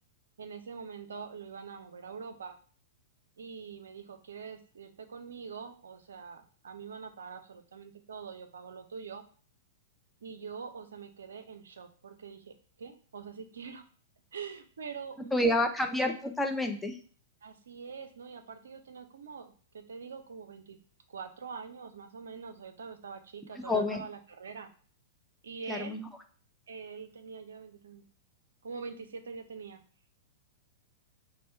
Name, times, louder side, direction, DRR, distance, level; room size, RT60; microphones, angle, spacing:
voice 1, 0.4-2.6 3.4-9.2 10.2-13.8 14.3-15.5 17.4-20.8 21.1-24.7 25.4-26.0 26.7-28.1 28.6-29.8, right 5 dB, 75° right, 8 dB, 0.5 m, -44 dB
voice 2, 15.3-17.0 23.6-24.0 25.7-26.1, left 1 dB, 5° left, 4 dB, 0.6 m, -29 dB
4.2 x 2.1 x 4.3 m, 0.43 s
figure-of-eight pair, 105°, 0 cm